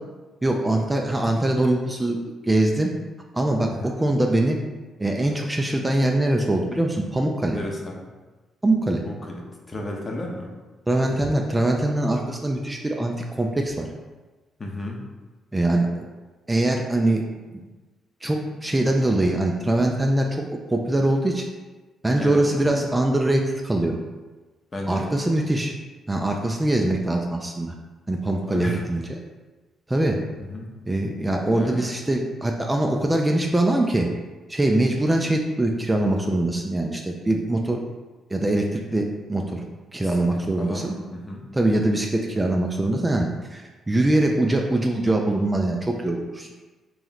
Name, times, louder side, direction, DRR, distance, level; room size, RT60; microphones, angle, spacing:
voice 1, 0.4-2.2 2.4-2.9 3.3-4.6 5.0-7.6 8.6-9.0 10.9-13.9 15.5-16.1 16.5-17.2 17.5-17.6 18.2-21.5 22.0-24.0 24.9-25.7 26.1-27.7 28.1-29.2 29.9-30.2 30.9-34.1 34.5-37.8 38.3-39.6 39.9-40.9 41.5-46.5, right 1 dB, 15° right, 1 dB, 0.4 m, -23 dB
voice 2, 7.5-8.1 9.0-10.5 14.6-15.0 22.2-22.9 24.7-25.1 28.5-28.9 30.4-30.7 31.5-31.8 40.0-41.5, left 1 dB, 30° left, 0 dB, 0.8 m, -34 dB
3.1 x 2.9 x 3.9 m, 1.2 s
cardioid pair, 90°, 0 cm